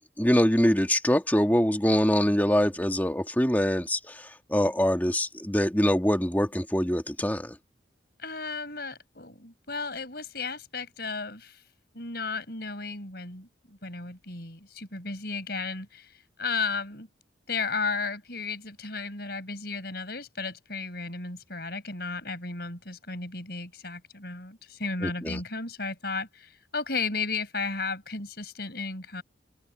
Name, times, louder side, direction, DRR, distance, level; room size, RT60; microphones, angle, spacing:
voice 1, 0.2-4.0 4.5-7.5 25.0-25.4, equal, 10° left, 1.9 m, -24 dB
voice 2, 8.2-11.6 12.0-17.1 17.5-29.2, left 4 dB, 60° left, 5.3 m, -34 dB
open air
head